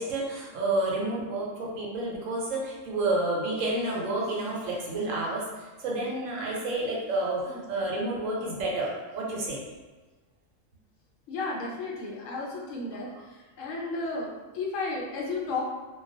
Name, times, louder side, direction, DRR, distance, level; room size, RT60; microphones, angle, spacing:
voice 1, 0.0-5.5 5.8-9.6, right 2 dB, 80° right, -3 dB, 1.0 m, -30 dB
voice 2, 11.3-13.1 13.6-15.6, left 3 dB, 75° left, -3 dB, 0.9 m, -33 dB
2.3 x 2.2 x 2.5 m, 1.3 s
omnidirectional pair, 1.3 m